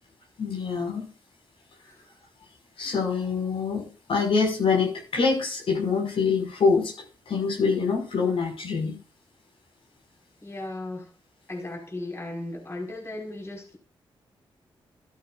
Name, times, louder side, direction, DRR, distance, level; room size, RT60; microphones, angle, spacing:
voice 1, 0.4-1.1 2.8-6.9 7.3-9.0, left 5 dB, 75° left, 5.8 m, -25 dB
voice 2, 10.4-11.1 11.5-13.8, left 2 dB, 30° left, 5.4 m, -36 dB
13.5 x 13.0 x 2.6 m
cardioid pair, 80°, 9 cm